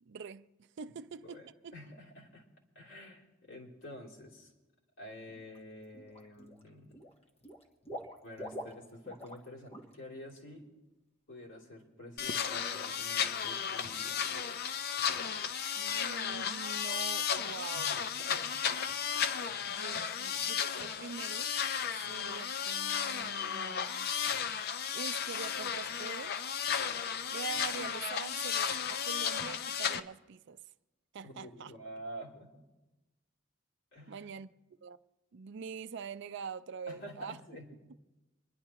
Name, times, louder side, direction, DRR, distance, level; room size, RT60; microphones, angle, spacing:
voice 1, 0.0-1.7 15.8-17.9 19.7-21.5 21.9-24.1 24.9-26.4 27.3-30.6 31.1-31.7 34.1-34.5 34.8-35.0 35.3-37.4, right 6 dB, 65° right, 0.4 m, -44 dB
voice 2, 1.2-2.4 2.7-4.5 5.0-6.9 8.2-10.7 11.3-14.2 17.7-17.9 18.2-18.7 19.4-19.7 31.2-32.6 33.9-34.3 36.9-38.0, equal, 75° left, 3.1 m, -49 dB
Water / Liquid, 5.3-5.6 5.9-6.6 6.9-9.4 9.7-9.9 10.3-10.4, equal, 30° left, 1.2 m, -45 dB
sound 1, 12.2-30.0, left 7 dB, 55° left, 0.5 m, -34 dB
26.5 x 11.0 x 2.9 m
head